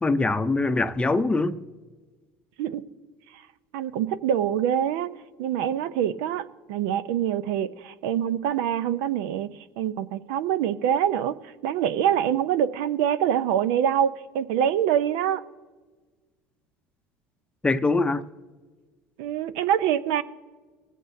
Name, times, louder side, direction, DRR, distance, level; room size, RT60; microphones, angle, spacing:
voice 1, 0.0-1.6 17.6-18.3, left 3 dB, 15° left, 0.6 m, -23 dB
voice 2, 3.7-5.1 5.4-9.5 9.8-15.4 19.2-20.2, right 9 dB, 75° right, 0.6 m, -25 dB
22.0 x 8.4 x 2.6 m
supercardioid pair, 95°, 7 cm